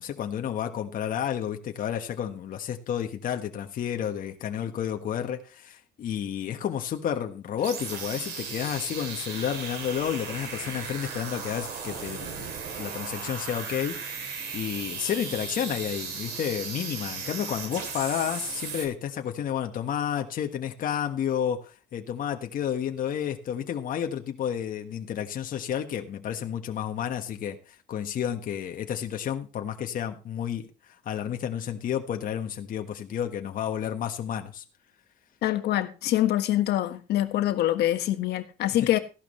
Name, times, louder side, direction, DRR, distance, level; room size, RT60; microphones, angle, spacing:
voice 1, 0.0-12.5 12.8-14.2 14.5-34.6 38.8-38.9, left 9 dB, 55° left, 1.5 m, -31 dB
sound 1, 7.6-18.9, right 5 dB, 85° right, 3.5 m, -36 dB
voice 2, 35.4-39.0, left 13 dB, 75° left, 1.6 m, -25 dB
15.0 x 12.0 x 3.3 m
cardioid pair, 110°, 17 cm